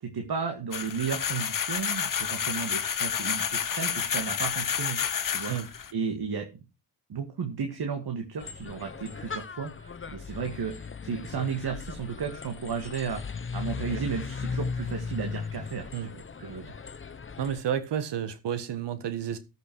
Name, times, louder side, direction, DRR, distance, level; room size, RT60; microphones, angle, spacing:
voice 1, 0.0-5.0 5.3-5.5 5.9-6.6 7.1-16.7, right 6 dB, 65° right, 2.2 m, -34 dB
sound 1, 0.7-5.9, left 8 dB, 50° left, 1.1 m, -30 dB
sound 2, 8.4-17.6, left 5 dB, 30° left, 1.0 m, -37 dB
voice 2, 17.4-19.4, right 9 dB, 85° right, 1.6 m, -31 dB
13.5 x 6.7 x 4.7 m
cardioid pair, 60°, 41 cm